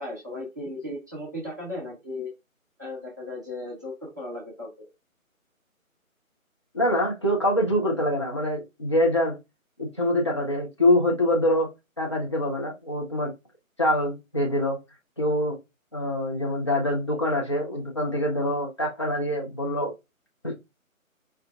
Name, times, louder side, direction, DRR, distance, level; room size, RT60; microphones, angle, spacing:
voice 1, 0.0-2.3 2.8-4.9, left 1 dB, 15° right, 0.8 m, -36 dB
voice 2, 6.7-9.4 9.8-11.7 12.0-13.3 13.8-14.8 15.2-15.6 15.9-19.9 20.4-20.7, left 1 dB, 20° left, 0.7 m, -25 dB
4.7 x 3.2 x 2.4 m
figure-of-eight pair, 155°, 42 cm